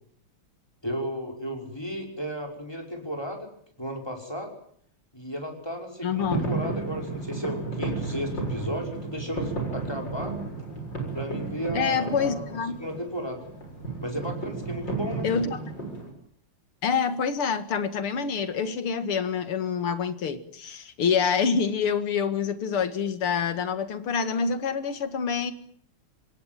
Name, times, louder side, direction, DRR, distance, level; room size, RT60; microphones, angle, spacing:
voice 1, 0.8-3.5 3.8-4.5 5.1-10.4 11.1-12.5 12.8-13.4 14.0-15.3, equal, 10° left, 3 dB, 5.8 m, -34 dB
voice 2, 6.0-6.5 11.7-12.8 15.2-15.6 16.8-25.5, left 6 dB, 85° left, 11 dB, 2.8 m, -26 dB
sound 1, 6.1-16.1, right 3 dB, 55° left, 7.8 m, -33 dB
26.5 x 20.5 x 9.2 m, 0.63 s
omnidirectional pair, 2.3 m